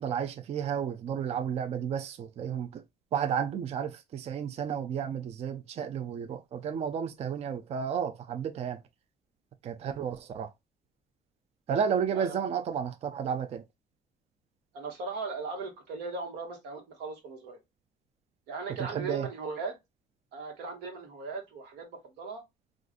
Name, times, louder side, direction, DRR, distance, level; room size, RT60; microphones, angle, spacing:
voice 1, 0.0-2.8 3.1-8.8 9.6-10.5 11.7-13.6 18.8-19.3, right 7 dB, 40° right, 0.4 m, -32 dB
voice 2, 14.7-17.6 18.5-19.8 20.3-22.4, right 4 dB, 90° right, 1.2 m, -38 dB
3.7 x 2.4 x 2.4 m
cardioid pair, 110°, 17 cm